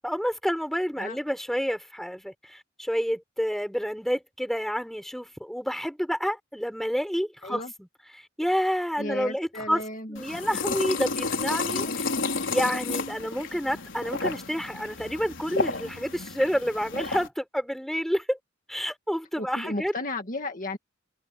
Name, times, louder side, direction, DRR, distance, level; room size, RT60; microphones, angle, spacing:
voice 1, 0.0-7.9 8.2-9.8 10.1-11.9 12.5-18.4 18.7-19.9, equal, ahead, 5.2 m, -29 dB
voice 2, 9.0-10.2 11.8-11.9 19.4-20.8, left 2 dB, 40° left, 2.0 m, -34 dB
sound 1, 10.1-17.3, left 4 dB, 75° left, 4.8 m, -31 dB
head